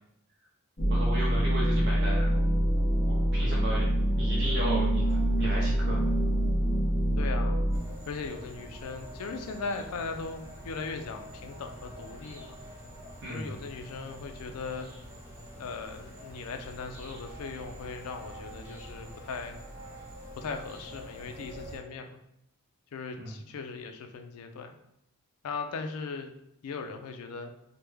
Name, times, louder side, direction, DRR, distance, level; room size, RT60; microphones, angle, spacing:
sound 1, 0.8-7.8, right 1 dB, 30° left, 0.7 m, -25 dB
voice 1, 0.9-2.3 3.0-3.9 4.2-6.1 13.2-13.6 23.2-23.3, right 1 dB, 50° right, -4 dB, 0.5 m, -35 dB
voice 2, 7.2-7.6 8.1-12.6 13.3-14.9 15.6-19.6 20.4-22.2 22.9-24.7 25.4-26.3 26.6-27.5, left 4 dB, 75° left, 6 dB, 0.4 m, -38 dB
sound 2, 7.7-21.8, equal, 10° right, 0.7 m, -45 dB
3.3 x 2.1 x 3.2 m, 0.77 s
head